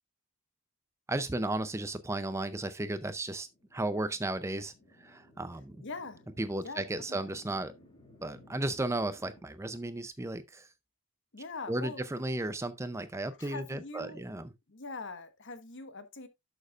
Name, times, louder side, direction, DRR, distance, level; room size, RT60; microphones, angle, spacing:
voice 1, 1.1-4.7 5.0-5.8 6.4-7.7 8.2-10.7 11.7-14.5, right 2 dB, 10° right, 0.5 m, -34 dB
sound 1, 2.9-9.4, left 1 dB, 20° left, 2.2 m, -60 dB
voice 2, 5.8-6.2 6.6-6.8 7.1-7.4 11.3-12.0 13.4-14.2 14.7-16.3, left 3 dB, 55° left, 1.2 m, -42 dB
11.5 x 6.6 x 2.4 m
head